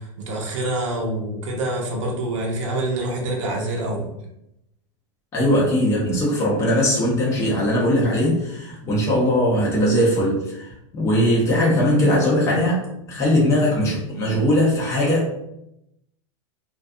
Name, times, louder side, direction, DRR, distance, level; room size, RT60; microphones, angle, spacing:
voice 1, 0.2-4.1, right 1 dB, 80° right, -1 dB, 0.7 m, -26 dB
voice 2, 5.3-12.8 13.1-15.4, equal, 20° left, -5 dB, 0.5 m, -20 dB
2.3 x 2.2 x 2.5 m, 0.82 s
supercardioid pair, 160°, 16 cm